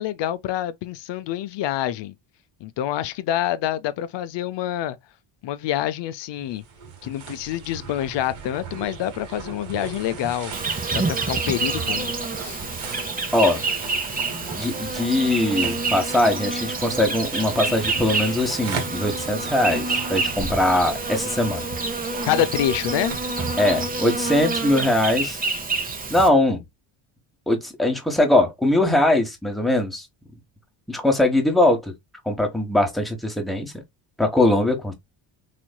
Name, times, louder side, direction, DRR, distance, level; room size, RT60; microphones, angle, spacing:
voice 1, 0.0-2.1 2.6-5.0 5.4-6.6 7.0-10.5 10.9-12.1 12.4-12.6 22.3-23.2, left 11 dB, 60° left, 0.6 m, -26 dB
sound 1, 6.4-24.3, right 5 dB, 75° right, 1.7 m, -38 dB
Insect, 10.5-26.3, right 3 dB, 20° right, 0.8 m, -28 dB
voice 2, 14.5-21.7 23.6-25.4 26.1-26.6 27.5-30.1 30.9-31.8 32.2-33.8 34.2-34.9, left 1 dB, ahead, 1.2 m, -21 dB
4.1 x 3.1 x 2.2 m
cardioid pair, 115°, 48 cm